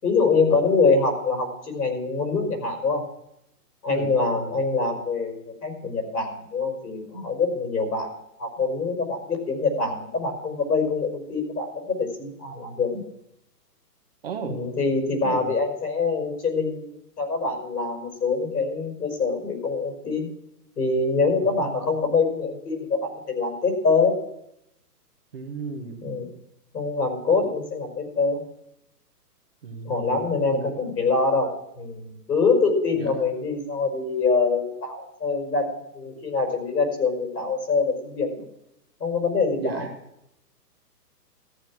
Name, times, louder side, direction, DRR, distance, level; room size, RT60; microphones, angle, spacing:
voice 1, 0.0-3.0 3.8-8.1 8.4-13.0 14.4-20.3 20.8-24.1 26.0-26.3 26.7-28.4 29.8-38.4 39.0-39.9, left 4 dB, 80° left, 4 dB, 5.6 m, -24 dB
voice 2, 14.2-14.6 15.2-15.5 21.4-21.8 25.3-26.0 27.4-27.6 29.6-31.0 32.9-33.1 39.6-39.9, right 5 dB, 35° right, 5 dB, 1.4 m, -35 dB
14.0 x 10.0 x 6.1 m, 0.80 s
hypercardioid pair, 175°, 49 cm